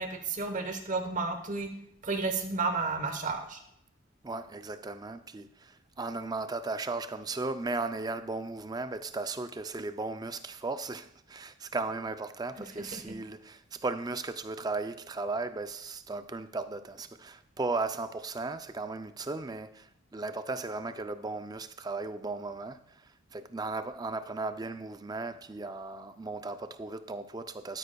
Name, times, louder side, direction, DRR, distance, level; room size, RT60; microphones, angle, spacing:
voice 1, 0.0-1.7 2.0-3.6 12.9-13.1, right 3 dB, 35° right, 1.0 m, -32 dB
voice 2, 4.2-27.8, right 3 dB, 20° right, 0.4 m, -36 dB
12.5 x 10.0 x 2.3 m
head